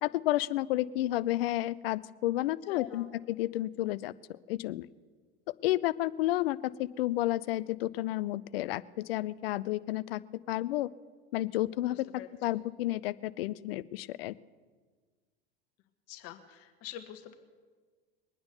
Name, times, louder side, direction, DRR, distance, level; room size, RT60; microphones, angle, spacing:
voice 1, 0.0-4.9 5.6-10.2 10.5-10.9 11.3-12.0 12.4-14.3, left 15 dB, 70° left, 19 dB, 0.6 m, -31 dB
voice 2, 2.7-3.1 11.9-12.3 16.1-17.3, left 12 dB, 50° left, 8 dB, 1.4 m, -45 dB
22.0 x 9.6 x 6.7 m, 1.5 s
hypercardioid pair, 85°, 30 cm